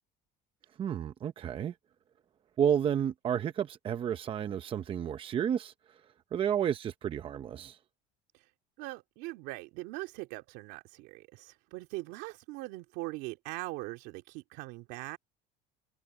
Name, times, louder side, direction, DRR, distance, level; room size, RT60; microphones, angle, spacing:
voice 1, 0.8-1.7 2.6-6.0 6.3-7.8, right 9 dB, 30° right, 0.8 m, -31 dB
voice 2, 8.8-15.2, right 21 dB, 75° right, 2.7 m, -41 dB
cardioid pair, 145°, 18 cm